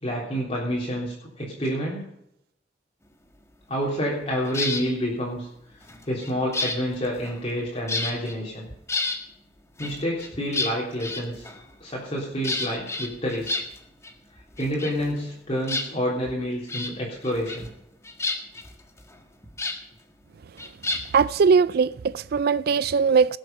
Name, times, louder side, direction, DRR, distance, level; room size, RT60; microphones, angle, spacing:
voice 1, 0.0-2.0 3.7-5.5 6.1-8.7 9.8-11.5 11.8-13.6 14.6-17.7, equal, 35° left, 3.5 m, -28 dB
sound 1, 4.5-4.9 5.8-7.6 7.9-8.3 8.7-9.2 9.8-11.8 12.4-14.1 14.4-15.4 15.6-16.3 16.7-16.9 17.2-17.8 18.0-19.8 20.6-21.3, left 2 dB, 15° left, 1.5 m, -31 dB
voice 2, 21.1-23.4, right 5 dB, 55° right, 0.4 m, -20 dB
18.5 x 7.7 x 5.4 m
head